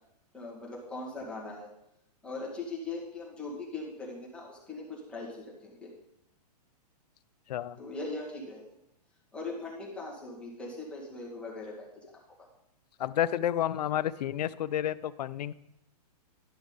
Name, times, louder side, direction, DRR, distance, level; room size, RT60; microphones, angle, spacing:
voice 1, 0.3-1.7 2.2-5.9 7.8-8.6 9.3-12.5, left 3 dB, 5° left, -5 dB, 2.0 m, -40 dB
voice 2, 7.5-7.8 13.0-15.5, left 11 dB, 80° left, 17 dB, 0.4 m, -30 dB
11.5 x 6.1 x 4.0 m, 0.82 s
hypercardioid pair, 145°, 21 cm